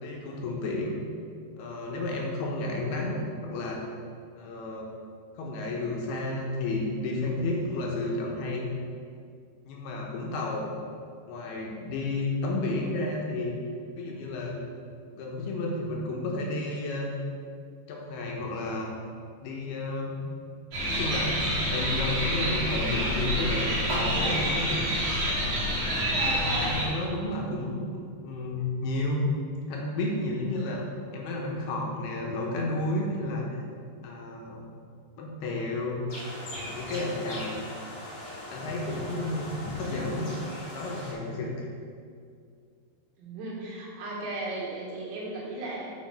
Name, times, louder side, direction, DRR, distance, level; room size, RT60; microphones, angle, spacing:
voice 1, 0.0-1.0 1.6-3.8 4.4-4.9 5.4-8.7 9.7-10.7 11.3-13.5 14.0-14.6 15.1-17.1 17.9-18.9 19.4-20.2 20.9-24.9 26.4-29.2 29.7-30.8 31.1-33.6 34.0-34.6 35.2-36.0 36.6-37.7 38.5-40.4 40.7-41.7, left 2 dB, 75° left, -1 dB, 2.7 m, -32 dB
sound 1, 20.7-26.8, equal, 45° right, 1.7 m, -27 dB
sound 2, 36.1-41.1, left 1 dB, 35° left, 1.9 m, -40 dB
voice 2, 43.2-45.9, right 2 dB, 80° right, -4 dB, 3.8 m, -36 dB
7.3 x 5.4 x 5.3 m, 2.3 s
omnidirectional pair, 4.9 m